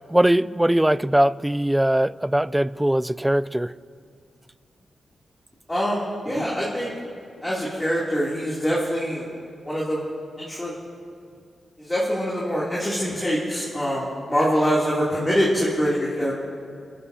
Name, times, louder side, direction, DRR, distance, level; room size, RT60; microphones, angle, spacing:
voice 1, 0.1-3.7, right 1 dB, 10° right, 0.3 m, -20 dB
voice 2, 5.7-6.9 7.4-9.3 9.6-10.0 10.4-10.7 11.8-16.3, equal, 15° left, 2.9 m, -24 dB
27.0 x 11.0 x 2.8 m
cardioid pair, 60°, 0 cm